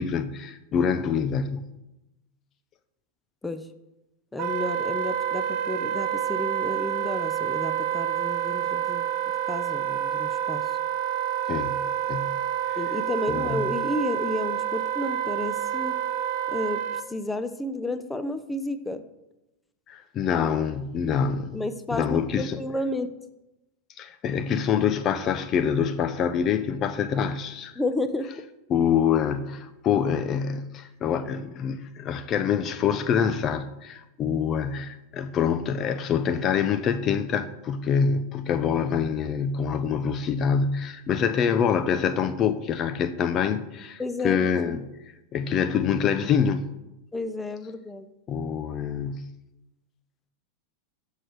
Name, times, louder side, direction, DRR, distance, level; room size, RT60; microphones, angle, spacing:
voice 1, 0.0-1.7 11.5-12.4 12.7-12.8 13.3-13.7 19.9-21.6 21.9-22.6 24.0-27.8 28.7-44.8 45.3-46.7 48.3-49.3, left 7 dB, 40° left, 0.8 m, -26 dB
voice 2, 4.3-9.1 9.5-10.6 12.8-16.0 16.5-16.8 17.1-19.0 21.5-23.1 27.8-28.3 44.0-44.8 47.1-48.1, left 2 dB, 10° left, 0.9 m, -31 dB
Wind instrument woodwind instrument, 4.4-17.1, right 10 dB, 50° right, 1.1 m, -28 dB
15.0 x 6.8 x 4.7 m
hypercardioid pair, 105°, 0 cm